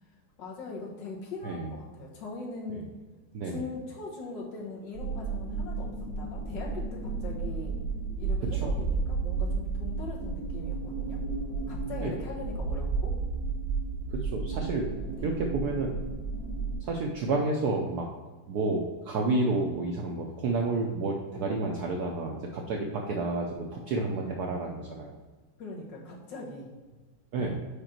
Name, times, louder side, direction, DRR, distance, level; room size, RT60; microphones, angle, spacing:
voice 1, 0.4-2.9 3.4-7.7 8.2-11.2 11.7-13.1 15.1-15.3 24.2-24.3 25.6-26.7, left 3 dB, 65° left, -3 dB, 1.8 m, -41 dB
sound 1, 4.9-16.8, right 4 dB, 45° right, 2.4 m, -32 dB
voice 2, 14.1-14.9 15.2-16.0 16.8-18.1 18.5-25.1 27.3-27.5, right 3 dB, 70° right, 1 dB, 0.9 m, -30 dB
5.2 x 4.9 x 4.3 m, 1.3 s
omnidirectional pair, 2.3 m